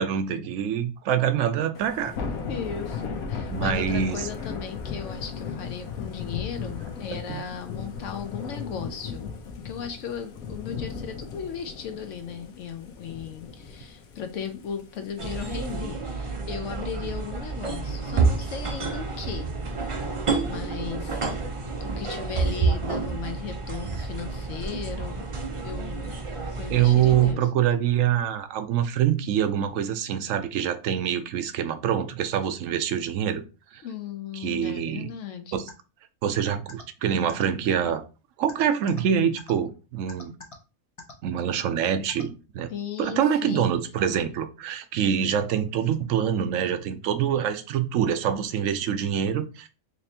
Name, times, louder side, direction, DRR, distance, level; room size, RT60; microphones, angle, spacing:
voice 1, 0.0-2.1 3.5-4.3 7.1-7.4 26.7-33.4 33.7-33.8 34.4-35.1 35.5-35.6 36.2-38.0 38.4-40.3 41.2-42.7 43.0-49.7, right 9 dB, 70° right, 0.9 m, -25 dB
Thunder / Rain, 1.7-15.7, left 5 dB, 90° left, 1.2 m, -36 dB
voice 2, 2.5-9.3 9.6-19.5 19.8-19.9 20.4-21.2 21.8-25.2 25.6-26.2 26.6-27.4 33.8-35.6 42.7-43.7, left 7 dB, 70° left, 0.9 m, -36 dB
sound 1, 15.2-27.3, right 4 dB, 40° right, 0.4 m, -29 dB
sound 2, 35.7-35.8 36.7-36.8 37.3-37.4 38.5-39.0 39.4-39.5 40.1-40.5 41.0-41.1 42.1-42.2, left 3 dB, 30° left, 0.6 m, -42 dB
4.2 x 3.1 x 2.7 m
omnidirectional pair, 1.5 m